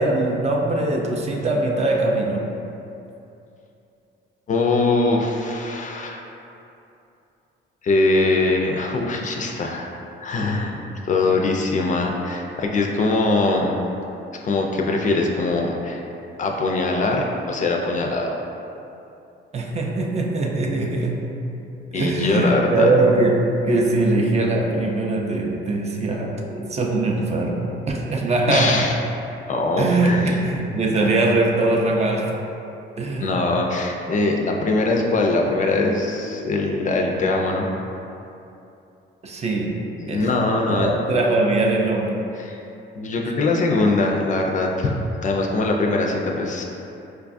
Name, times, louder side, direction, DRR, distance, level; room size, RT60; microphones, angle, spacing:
voice 1, 0.0-2.5 19.5-21.3 21.9-28.9 29.7-32.3 33.0-33.3 39.2-39.8 40.1-40.3 40.6-42.2, right 2 dB, 35° right, 0 dB, 0.4 m, -21 dB
voice 2, 4.5-6.2 7.8-9.9 10.2-10.8 11.1-13.7 14.4-16.0 16.4-18.3 21.9-22.9 28.5-29.0 29.5-30.4 33.2-37.7 40.0-40.9 42.4-42.6 43.0-44.9 45.2-46.6, left 2 dB, 40° left, 1 dB, 0.4 m, -22 dB
4.6 x 2.3 x 2.5 m, 2.8 s
cardioid pair, 100°, 20 cm